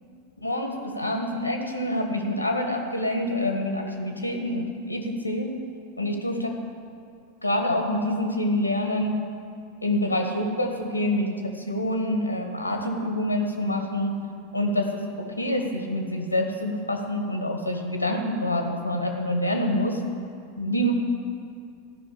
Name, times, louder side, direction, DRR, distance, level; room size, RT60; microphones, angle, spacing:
voice 1, 0.4-5.5 6.0-6.5 7.4-9.2 9.8-14.2 14.5-15.0 15.4-20.0 20.6-20.9, left 1 dB, 85° left, 3 dB, 1.5 m, -26 dB
14.0 x 6.1 x 8.9 m, 2.4 s
figure-of-eight pair, 90°, 0 cm